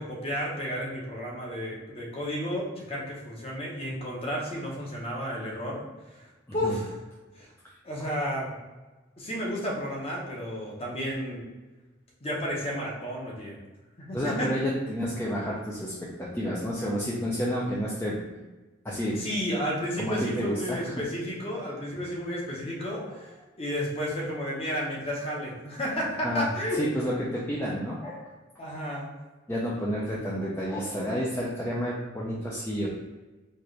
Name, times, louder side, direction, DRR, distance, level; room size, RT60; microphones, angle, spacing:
voice 1, 0.0-5.8 6.1-6.2 6.5-7.0 7.3-7.5 7.8-8.5 9.2-11.5 12.2-13.6 14.0-14.5 19.1-23.3 23.6-26.8 28.6-29.1, equal, 30° left, -3 dB, 0.9 m, -32 dB
voice 2, 14.1-15.9 16.2-18.1 18.8-19.2 20.0-21.0 22.9-23.2 26.2-26.5 26.8-28.2 29.5-32.9, equal, 10° left, -5 dB, 0.5 m, -30 dB
4.4 x 2.5 x 3.2 m, 1.2 s
head